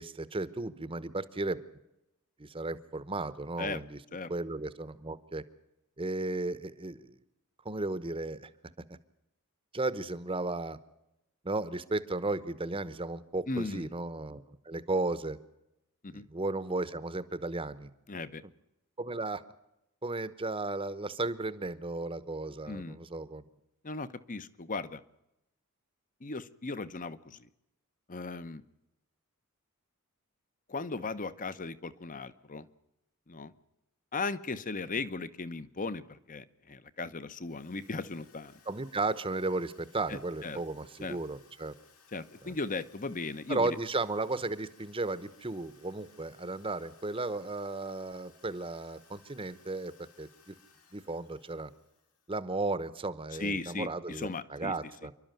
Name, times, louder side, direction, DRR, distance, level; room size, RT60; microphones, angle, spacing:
voice 1, 0.0-1.6 2.4-4.0 4.3-5.4 6.0-7.2 7.6-8.5 9.7-10.8 11.4-15.4 16.1-17.9 19.0-19.4 20.0-23.5 38.7-41.7 42.4-42.6 43.5-50.5 50.9-51.7 52.3-55.1, right 2 dB, 25° right, 15 dB, 1.0 m, -34 dB
voice 2, 13.5-13.9 16.0-16.3 18.1-18.4 22.7-23.0 23.8-25.0 26.2-27.5 28.1-28.6 30.7-32.7 33.3-33.5 34.1-38.5 40.1-40.6 41.0-41.2 42.1-43.8 53.4-54.9, left 3 dB, 35° left, 14 dB, 0.9 m, -37 dB
Drill, 37.4-52.6, left 5 dB, 85° left, 4.7 m, -63 dB
28.0 x 12.0 x 9.1 m, 0.89 s
head